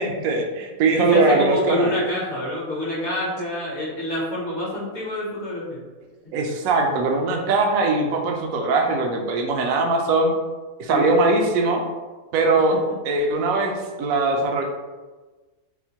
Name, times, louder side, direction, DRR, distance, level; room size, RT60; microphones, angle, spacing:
voice 1, 0.0-1.9 6.3-10.3 10.8-11.8 12.3-12.7 13.1-13.7 14.0-14.6, right 3 dB, 75° right, 2 dB, 1.0 m, -21 dB
voice 2, 1.0-5.8 7.8-7.9 10.9-11.1, left 1 dB, 55° left, -4 dB, 1.0 m, -26 dB
4.3 x 2.1 x 2.7 m, 1.3 s
omnidirectional pair, 1.5 m